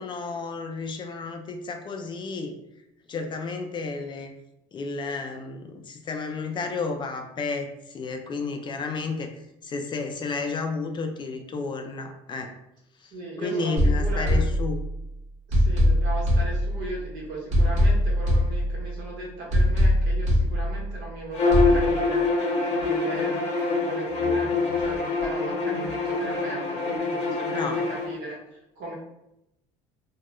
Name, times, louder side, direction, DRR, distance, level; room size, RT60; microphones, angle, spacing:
voice 1, 0.0-2.5 3.1-4.3 4.7-9.3 9.6-12.5 13.0-14.8 27.5-27.8, left 4 dB, 35° left, 5 dB, 0.4 m, -32 dB
voice 2, 13.1-14.5 15.5-23.4 23.8-24.5 24.8-28.9, right 2 dB, 85° right, -3 dB, 1.0 m, -37 dB
sound 1, 13.8-15.1 15.5-17.1 17.5-19.1 19.5-21.1 21.5-21.8, equal, 55° right, 1.0 m, -22 dB
Bowed string instrument, 21.3-28.1, left 3 dB, 50° left, 0.8 m, -25 dB
2.3 x 2.1 x 2.9 m, 0.85 s
supercardioid pair, 95°, 14 cm